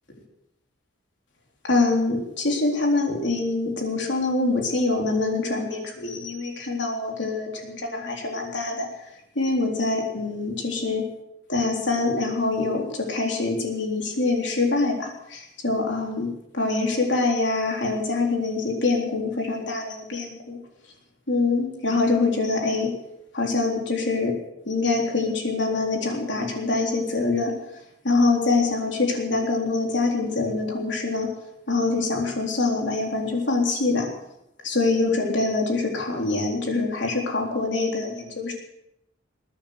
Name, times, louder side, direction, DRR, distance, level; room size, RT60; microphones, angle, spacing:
voice 1, 1.6-8.9 9.4-11.1 11.5-20.6 21.3-22.9 23.3-24.3 24.7-27.5 28.0-31.3 31.7-34.1 34.6-38.5, left 3 dB, 60° left, 1 dB, 3.9 m, -24 dB
21.5 x 9.3 x 6.7 m, 0.82 s
head